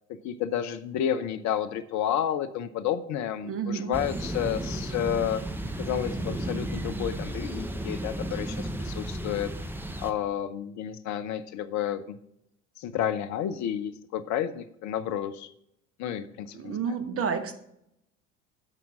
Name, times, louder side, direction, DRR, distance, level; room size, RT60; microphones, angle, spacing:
voice 1, 0.1-5.4 5.8-9.5 10.0-12.2 12.8-15.5 16.0-16.7, left 10 dB, 50° left, 11 dB, 0.8 m, -31 dB
voice 2, 3.4-4.0 16.5-17.5, right 6 dB, 40° right, 7 dB, 1.5 m, -30 dB
sound 1, 3.9-10.1, right 1 dB, 5° right, 1.0 m, -33 dB
15.5 x 5.9 x 3.7 m, 0.76 s
figure-of-eight pair, 60°, 36 cm